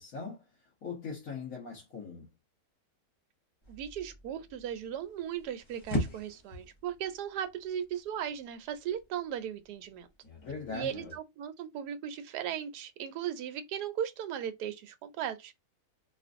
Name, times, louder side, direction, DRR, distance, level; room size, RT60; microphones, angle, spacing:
voice 1, 0.0-2.3 10.4-11.0, left 5 dB, 60° left, 1.5 m, -41 dB
sound 1, 3.6-11.2, left 1 dB, 30° left, 0.6 m, -41 dB
voice 2, 3.7-10.1 10.7-15.5, right 9 dB, 90° right, 1.2 m, -37 dB
3.8 x 2.5 x 2.5 m
omnidirectional pair, 1.7 m